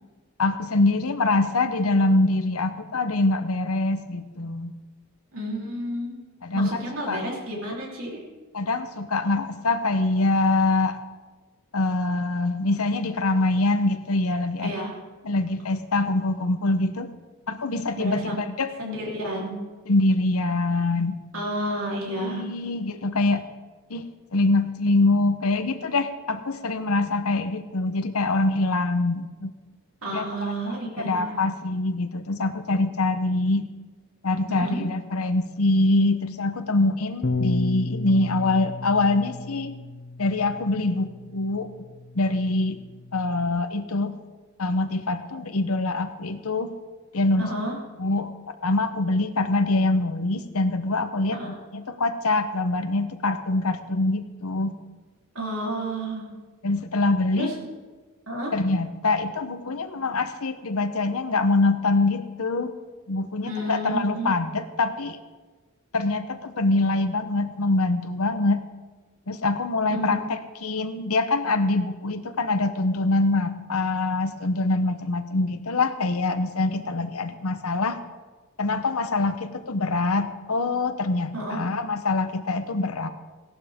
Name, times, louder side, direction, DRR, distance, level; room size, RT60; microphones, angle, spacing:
voice 1, 0.4-4.7 6.4-7.2 8.5-11.0 11.7-14.7 15.2-17.1 17.5-18.7 19.9-21.2 22.1-23.4 23.9-29.5 30.1-30.3 30.7-33.7 34.2-39.7 40.2-41.7 42.1-42.8 43.1-44.2 44.6-46.8 47.1-47.5 48.0-54.8 56.6-57.5 58.5-62.7 63.1-65.2 65.9-68.6 69.3-78.0 78.6-83.1, left 2 dB, 80° left, 8 dB, 1.0 m, -24 dB
voice 2, 5.3-6.2 6.5-8.2 14.6-14.9 18.0-18.4 18.8-19.6 21.3-22.5 30.0-31.4 34.5-34.9 47.4-47.7 51.3-51.5 55.3-56.3 57.4-57.5 58.3-58.5 63.4-64.3 69.9-70.2 81.3-81.7, right 1 dB, 70° right, -2 dB, 3.7 m, -31 dB
Bass guitar, 37.2-43.5, left 2 dB, 45° left, 0.8 m, -33 dB
17.5 x 11.5 x 3.7 m, 1.3 s
head